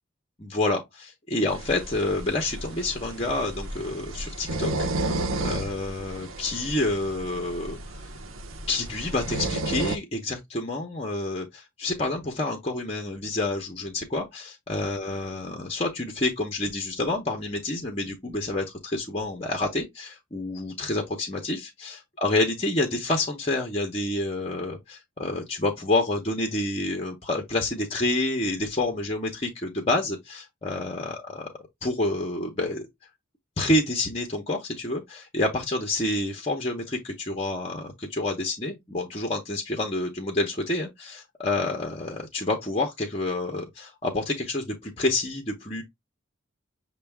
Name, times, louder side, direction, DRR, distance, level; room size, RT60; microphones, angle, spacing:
voice 1, 0.4-5.2 5.4-7.8 8.7-31.5 31.8-32.9 33.6-45.8, left 2 dB, 30° left, 0.8 m, -28 dB
sound 1, 1.5-10.0, right 2 dB, 85° right, 0.8 m, -33 dB
6.7 x 2.3 x 3.4 m
head